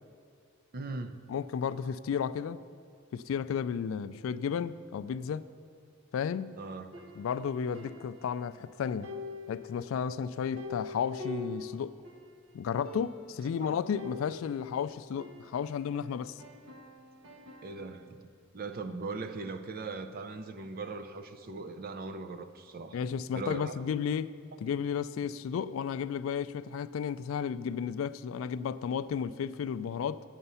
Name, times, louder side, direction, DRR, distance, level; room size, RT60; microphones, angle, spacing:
voice 1, 0.7-1.2 6.6-6.9 13.5-13.8 17.6-23.0 23.3-23.7, right 3 dB, 45° right, 0.5 m, -40 dB
voice 2, 1.3-2.6 3.1-5.5 6.1-6.6 7.2-9.1 9.5-11.9 12.5-16.4 22.9-24.3 24.6-30.2, left 7 dB, 80° left, 0.3 m, -33 dB
sound 1, 6.9-8.7 9.0-12.3 12.6-12.7 12.8-13.5 14.0-16.0 16.4-18.1, left 3 dB, 80° right, 1.0 m, -45 dB
8.8 x 8.1 x 5.5 m
head